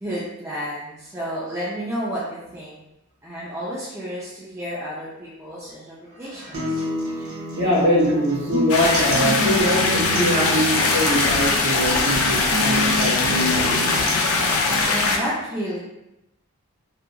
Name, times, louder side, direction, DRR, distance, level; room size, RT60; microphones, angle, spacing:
voice 1, 0.0-2.8 3.2-6.8 14.7-15.8, equal, 10° right, -9 dB, 0.3 m, -31 dB
sound 1, 6.5-14.5, equal, 70° right, 0.6 m, -29 dB
voice 2, 7.5-13.9, equal, 55° right, -7 dB, 1.1 m, -23 dB
sound 2, 8.7-15.2, left 3 dB, 75° left, 0.4 m, -21 dB
2.8 x 2.3 x 2.3 m, 0.91 s
head